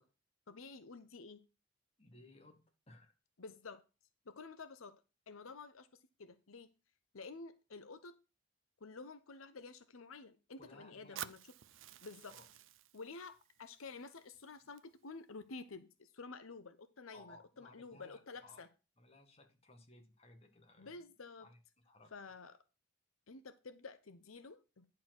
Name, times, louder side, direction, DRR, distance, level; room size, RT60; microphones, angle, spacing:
voice 1, 0.5-1.4 3.4-3.8 4.3-4.9 5.3-5.9 6.2-6.7 7.1-8.2 8.8-11.4 12.0-12.3 12.9-18.7 20.8-21.5 22.1-22.6 23.3-24.8, left 4 dB, 85° left, 0.8 m, -51 dB
voice 2, 2.0-3.1 10.6-11.3 12.3-12.5 17.1-18.6 19.0-21.0 21.4-21.6 21.8-22.1, left 2 dB, 30° left, 1.8 m, -60 dB
Fire, 11.2-15.2, right 11 dB, 70° right, 0.5 m, -52 dB
10.5 x 4.8 x 6.0 m
head